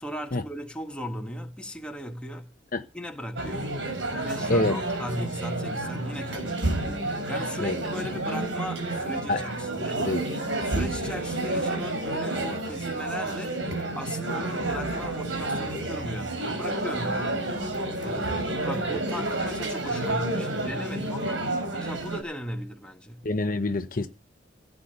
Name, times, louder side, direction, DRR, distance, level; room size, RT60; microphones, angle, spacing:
voice 1, 0.0-2.5 2.9-3.7 4.2-10.1 10.6-13.6 13.9-17.5 17.9-21.5 21.7-23.3, equal, 5° left, 1.7 m, -37 dB
sound 1, 3.4-22.2, right 2 dB, 85° right, 4.2 m, -30 dB
voice 2, 23.2-24.1, left 2 dB, 50° left, 0.9 m, -26 dB
16.0 x 8.2 x 6.9 m
head